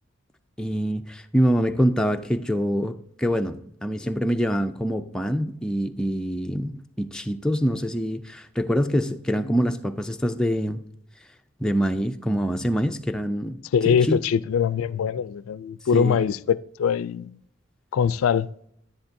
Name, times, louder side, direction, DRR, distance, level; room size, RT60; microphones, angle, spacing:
voice 1, 0.6-10.8 11.6-13.6 13.9-14.2 15.9-16.2, equal, 5° left, 0.3 m, -25 dB
voice 2, 13.7-17.4 17.9-18.5, left 7 dB, 85° left, 0.3 m, -23 dB
10.5 x 10.5 x 2.6 m
head